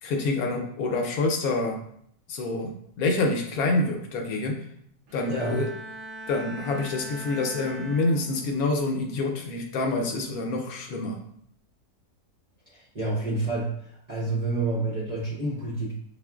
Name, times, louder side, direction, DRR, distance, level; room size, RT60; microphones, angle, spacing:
voice 1, 0.0-1.8 2.3-2.7 3.0-4.6 5.1-5.7 6.3-11.2, left 2 dB, 70° left, 2 dB, 1.0 m, -27 dB
Bowed string instrument, 5.1-8.6 9.1-9.5, right 2 dB, 60° right, 0.9 m, -41 dB
voice 2, 5.3-5.6 12.7-13.7 14.1-15.9, right 2 dB, 40° right, -6 dB, 0.6 m, -28 dB
5.5 x 2.4 x 2.3 m, 0.67 s
omnidirectional pair, 1.7 m